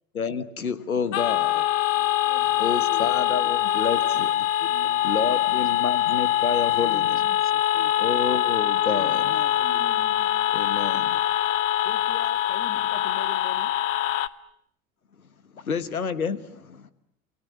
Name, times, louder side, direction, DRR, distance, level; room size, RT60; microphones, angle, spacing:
voice 1, 0.1-1.6 2.6-4.4 5.0-7.2 8.0-9.4 10.5-11.2 15.2-15.3 15.5-16.9, left 6 dB, 80° left, 15 dB, 1.5 m, -29 dB
voice 2, 1.0-1.7 2.9-3.1 4.6-5.7 6.8-7.9 8.9-9.6 11.8-13.8, left 7 dB, 30° left, 10 dB, 2.2 m, -42 dB
sound 1, 1.1-14.3, left 12 dB, 60° left, 1.1 m, -23 dB
voice 3, 1.9-3.3 4.6-4.9 9.5-10.6, right 3 dB, 85° right, 4 dB, 3.2 m, -47 dB
28.5 x 24.5 x 8.4 m, 0.73 s
figure-of-eight pair, 75°, 42 cm